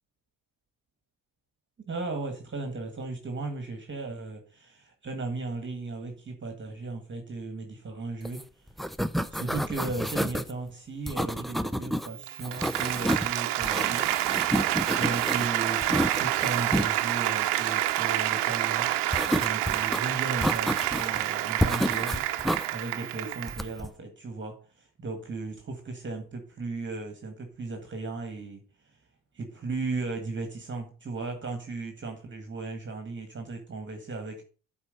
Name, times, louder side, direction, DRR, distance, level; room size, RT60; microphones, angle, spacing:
voice 1, 1.9-8.4 9.3-14.1 14.9-22.2 22.7-28.6 29.3-34.4, right 3 dB, 30° right, 1.7 m, -36 dB
sound 1, 8.3-8.4 8.7-10.5 11.1-12.1 12.4-13.3 13.6-15.5 15.8-16.9 19.1-20.0 20.4-21.2 21.6-22.7 23.5-23.9, equal, ahead, 0.4 m, -29 dB
Applause, 12.1-23.7, right 14 dB, 85° right, 0.9 m, -28 dB
8.2 x 4.6 x 6.5 m
cardioid pair, 105°, 40 cm